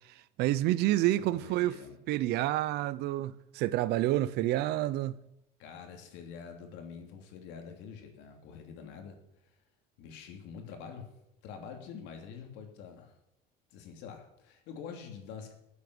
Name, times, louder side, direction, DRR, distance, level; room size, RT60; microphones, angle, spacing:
voice 1, 0.4-1.8 2.1-5.2, right 15 dB, 70° right, 0.7 m, -28 dB
voice 2, 1.3-2.0 5.6-9.2 10.0-11.1 11.4-13.2 13.7-15.5, left 6 dB, 80° left, 3.3 m, -46 dB
14.0 x 8.4 x 7.9 m
cardioid pair, 150°, 18 cm